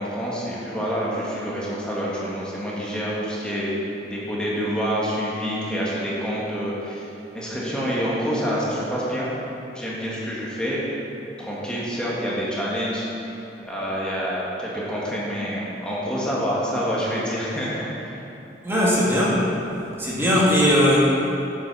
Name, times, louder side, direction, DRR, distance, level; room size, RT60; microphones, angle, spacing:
voice 1, 0.0-3.7 4.0-7.0 7.3-9.3 9.7-10.8 11.4-13.0 13.6-18.1, equal, 5° left, -7 dB, 1.8 m, -27 dB
voice 2, 18.6-19.5 20.0-21.0, equal, 15° right, -7 dB, 2.1 m, -19 dB
8.6 x 7.5 x 5.6 m, 2.9 s
head